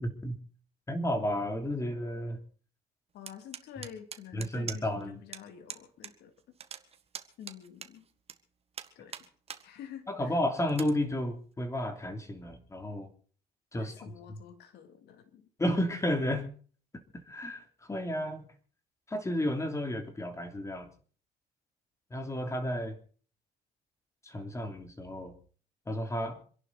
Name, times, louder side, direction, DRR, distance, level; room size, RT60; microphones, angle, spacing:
voice 1, 0.0-0.4 0.9-2.4 4.3-5.2 10.1-13.1 13.7-13.9 15.6-16.5 17.3-18.5 19.1-20.9 22.1-23.0 24.2-25.3 25.9-26.4, left 1 dB, 15° left, 7 dB, 3.0 m, -32 dB
voice 2, 3.1-6.3 7.4-8.1 8.9-9.3 9.6-10.4 13.7-15.5, left 9 dB, 75° left, 8 dB, 2.5 m, -48 dB
sound 1, 3.3-5.0 5.3-5.4 5.7-6.1 6.4-8.3 8.7-9.6 10.1-10.2 10.7-10.9, right 7 dB, 35° right, 1.6 m, -42 dB
27.0 x 11.0 x 4.1 m, 0.43 s
cardioid pair, 110°, 17 cm